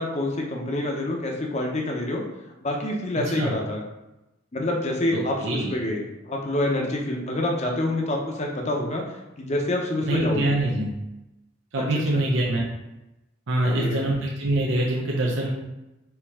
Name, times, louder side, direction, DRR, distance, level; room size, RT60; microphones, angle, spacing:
voice 1, 0.0-2.2 2.6-3.9 4.5-9.0 9.4-10.5 11.8-11.9 12.1-12.2 13.6-14.1, left 1 dB, 35° left, 0 dB, 0.7 m, -27 dB
voice 2, 3.2-3.5 5.1-5.7 10.0-10.9 11.7-12.7 13.5-15.5, right 1 dB, 70° right, -3 dB, 0.7 m, -25 dB
4.6 x 2.9 x 3.6 m, 0.98 s
head